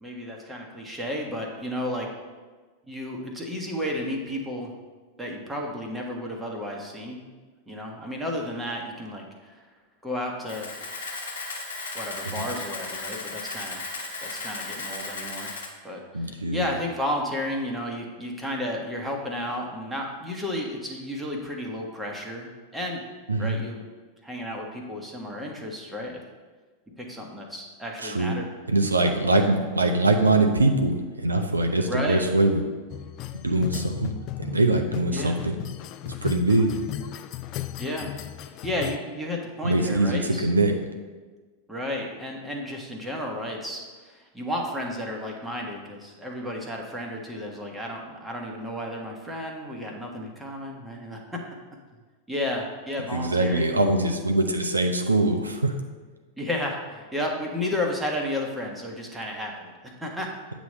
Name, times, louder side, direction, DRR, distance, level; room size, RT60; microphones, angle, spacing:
voice 1, 0.0-2.1 2.9-4.7 5.2-7.2 7.7-9.6 10.0-10.7 11.9-13.8 14.2-15.6 15.8-23.0 23.4-23.8 24.2-26.2 27.0-28.4 29.0-29.1 31.9-32.2 35.1-35.4 37.8-38.1 38.4-40.5 41.7-51.4 52.3-53.8 56.4-60.3, left 1 dB, 5° right, -1 dB, 1.3 m, -32 dB
Camera, 10.5-15.7, left 3 dB, 70° left, 1.3 m, -35 dB
voice 2, 16.1-16.7 23.3-23.6 28.0-28.3 28.7-32.6 33.4-34.1 34.4-35.5 36.0-36.7 39.6-40.7 53.1-55.7, right 2 dB, 80° right, 4 dB, 0.6 m, -23 dB
sound 1, 32.9-39.0, left 12 dB, 40° left, 0.3 m, -35 dB
8.2 x 3.1 x 6.4 m, 1.4 s
figure-of-eight pair, 90°, 0 cm